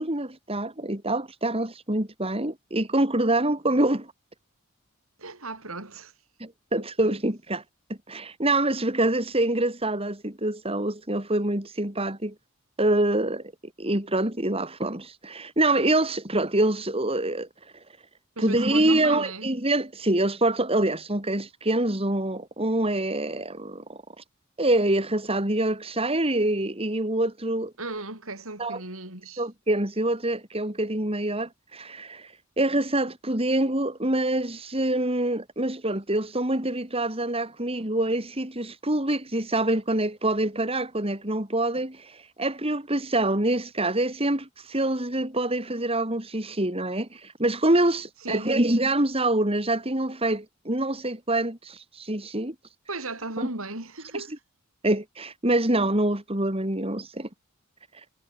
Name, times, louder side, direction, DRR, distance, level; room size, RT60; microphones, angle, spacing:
voice 1, 0.0-4.1 6.4-7.6 8.1-12.3 12.8-13.5 13.8-17.5 18.4-24.2 24.6-27.7 28.6-28.8 29.4-52.6 53.4-53.5 54.8-57.3, right 1 dB, 25° right, 3.7 m, -25 dB
voice 2, 5.2-6.1 6.7-7.2 18.4-19.5 27.8-29.4 48.2-48.5 52.9-54.3, right 2 dB, 75° right, 6.9 m, -36 dB
head